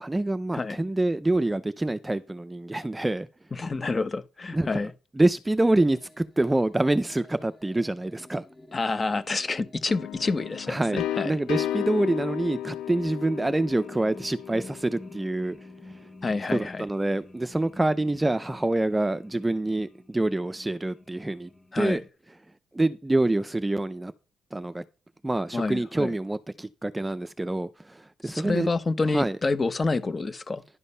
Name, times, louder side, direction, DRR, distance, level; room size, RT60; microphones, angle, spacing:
voice 1, 0.0-3.3 4.5-4.9 5.1-8.4 10.7-15.6 16.5-21.5 21.7-22.0 22.7-24.1 24.5-24.8 25.2-28.7 29.1-29.4, right 2 dB, 10° right, 0.5 m, -26 dB
voice 2, 3.6-4.9 8.7-11.3 16.2-16.8 21.7-22.0 25.5-26.1 28.2-30.6, left 3 dB, 30° left, 0.9 m, -28 dB
sound 1, 6.0-22.1, left 1 dB, 5° left, 1.2 m, -51 dB
sound 2, 9.9-15.6, left 12 dB, 90° left, 0.5 m, -34 dB
11.0 x 5.2 x 5.5 m
cardioid pair, 90°, 0 cm